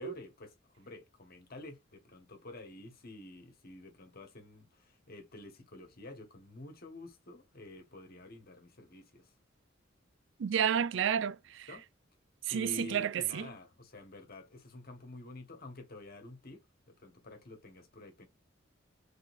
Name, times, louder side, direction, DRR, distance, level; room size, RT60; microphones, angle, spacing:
voice 1, 0.0-9.3 11.7-11.8 12.5-16.6 16.9-18.3, left 2 dB, 50° left, 1.5 m, -49 dB
voice 2, 10.4-11.7 12.5-13.5, right 8 dB, 70° right, 0.4 m, -31 dB
3.8 x 3.7 x 2.6 m
head